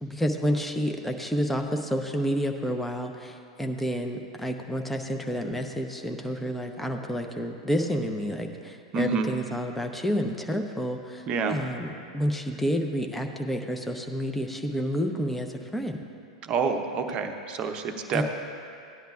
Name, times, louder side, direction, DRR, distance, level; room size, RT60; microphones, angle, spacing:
voice 1, 0.0-16.0 18.1-18.2, equal, 5° left, 3 dB, 0.8 m, -29 dB
voice 2, 8.9-9.3 11.3-11.6 16.4-18.2, right 5 dB, 35° right, 5 dB, 0.8 m, -28 dB
16.5 x 10.5 x 2.4 m, 2.5 s
figure-of-eight pair, 90°, 3 cm